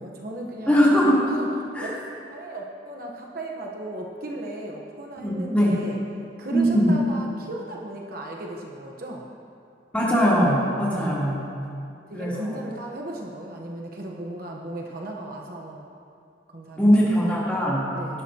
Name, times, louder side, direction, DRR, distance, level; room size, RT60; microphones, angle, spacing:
voice 1, 0.0-0.8 1.3-2.0 2.3-6.0 6.4-9.3 12.1-15.9 16.5-17.3 17.9-18.2, right 1 dB, 55° right, 0 dB, 1.1 m, -36 dB
voice 2, 0.7-1.3 1.7-1.9 5.2-5.7 6.5-6.9 9.9-11.4 12.1-12.5 16.8-17.8, equal, 10° left, -8 dB, 3.2 m, -20 dB
17.5 x 12.0 x 2.9 m, 2.5 s
head